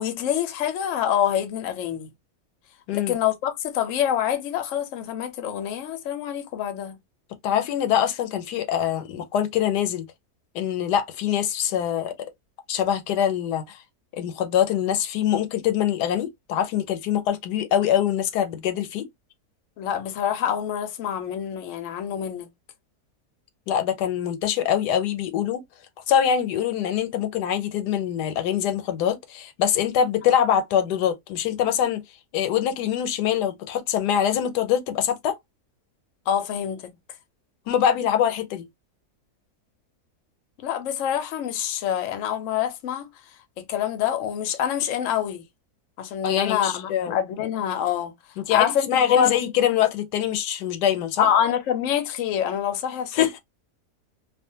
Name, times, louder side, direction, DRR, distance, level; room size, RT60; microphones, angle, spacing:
voice 1, 0.0-2.1 2.9-7.0 19.8-22.5 36.3-36.9 40.6-43.1 43.6-45.4 46.0-48.1 48.5-49.3 51.2-53.4, left 9 dB, 65° left, 0.8 m, -26 dB
voice 2, 7.4-10.1 10.5-12.1 12.7-13.8 14.1-19.1 23.7-25.6 26.1-32.0 32.3-35.4 37.7-38.7 46.2-47.2 48.4-51.3 53.1-53.4, left 9 dB, 85° left, 1.2 m, -24 dB
2.4 x 2.4 x 2.7 m
omnidirectional pair, 1.7 m